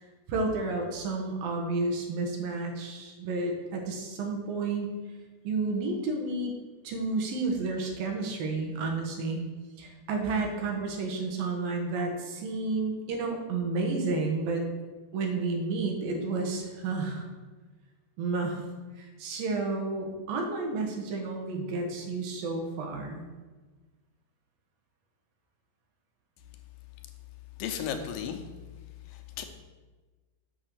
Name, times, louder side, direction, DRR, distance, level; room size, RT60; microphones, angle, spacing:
voice 1, 0.3-5.0 5.4-6.5 6.8-9.4 9.8-14.6 15.1-17.3 18.2-18.6 19.0-23.2, right 3 dB, 80° right, 1 dB, 3.0 m, -31 dB
voice 2, 27.6-28.4 29.1-29.4, left 8 dB, 90° left, 6 dB, 2.6 m, -34 dB
6.9 x 6.4 x 6.1 m, 1.3 s
omnidirectional pair, 4.0 m